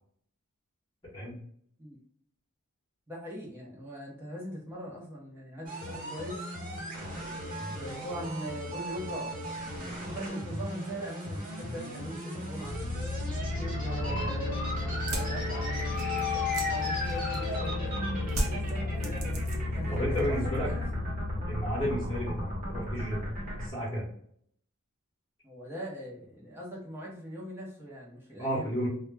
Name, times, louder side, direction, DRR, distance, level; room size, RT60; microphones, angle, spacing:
voice 1, 3.1-6.5 7.7-9.4 9.7-12.8 13.4-17.9 18.4-19.4 19.7-20.8 25.4-28.9, equal, 10° right, -4 dB, 0.6 m, -41 dB
sound 1, 5.7-23.7, right 1 dB, 40° right, 1.0 m, -37 dB
sound 2, 12.6-23.5, left 3 dB, 45° left, 0.6 m, -34 dB
sound 3, 14.9-17.7 18.3-19.8 20.1-20.7, right 1 dB, 70° right, 0.6 m, -36 dB
voice 2, 19.9-20.7 21.5-23.2 23.6-24.1 28.4-28.9, equal, 20° left, -10 dB, 0.9 m, -32 dB
2.2 x 2.0 x 3.2 m, 0.64 s
head